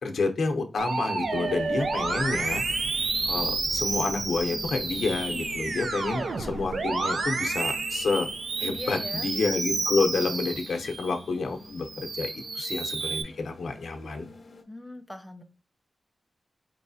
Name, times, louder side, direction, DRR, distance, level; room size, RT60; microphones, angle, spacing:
voice 1, 0.0-2.8 3.2-8.3 8.6-14.3, left 3 dB, 80° left, 4 dB, 0.7 m, -29 dB
sound 1, 0.8-14.6, left 3 dB, 40° left, 0.7 m, -47 dB
Musical instrument, 0.8-11.2 11.7-13.2, right 3 dB, 60° right, 0.5 m, -30 dB
sound 2, 1.2-12.6, equal, 75° right, 1.2 m, -47 dB
voice 2, 8.6-9.3 14.7-15.4, left 1 dB, 5° left, 7 dB, 0.5 m, -40 dB
4.6 x 3.1 x 2.7 m, 0.34 s
wide cardioid pair, 170°, 0 cm